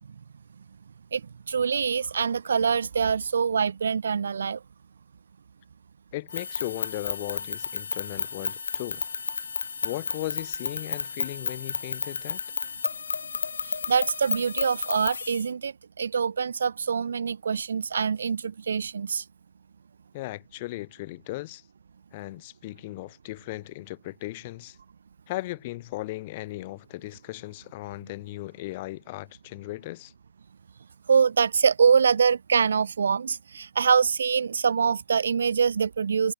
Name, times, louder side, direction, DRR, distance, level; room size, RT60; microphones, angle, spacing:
voice 1, 1.5-4.6 13.9-19.2 31.1-36.3, right 6 dB, 65° right, 0.3 m, -24 dB
voice 2, 6.1-9.0 9.8-12.4 20.1-21.6 22.1-24.8 25.3-30.1, left 19 dB, 35° left, 2.7 m, -37 dB
sound 1, 6.3-15.5, left 5 dB, 70° left, 0.8 m, -32 dB
figure-of-eight pair, 135°, 0 cm